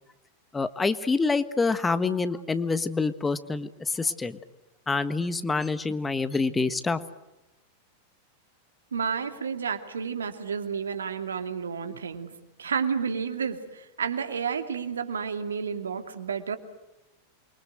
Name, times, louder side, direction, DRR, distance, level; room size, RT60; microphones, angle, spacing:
voice 1, 0.5-4.4 4.9-7.0, left 4 dB, 10° left, 13 dB, 1.4 m, -26 dB
voice 2, 8.9-16.6, right 6 dB, 70° right, 8 dB, 2.6 m, -31 dB
28.5 x 24.0 x 7.9 m, 0.99 s
figure-of-eight pair, 90°, 0 cm